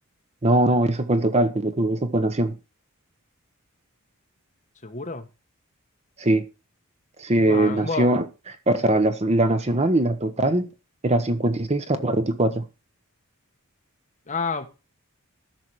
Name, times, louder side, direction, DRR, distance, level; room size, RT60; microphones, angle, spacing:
voice 1, 0.4-2.5 6.2-6.4 7.2-8.2 8.7-10.7 11.0-12.6, right 1 dB, 30° right, 0.9 m, -21 dB
voice 2, 4.8-5.3 7.4-8.1 14.3-14.7, left 4 dB, 35° left, 1.3 m, -29 dB
13.5 x 6.0 x 4.6 m
head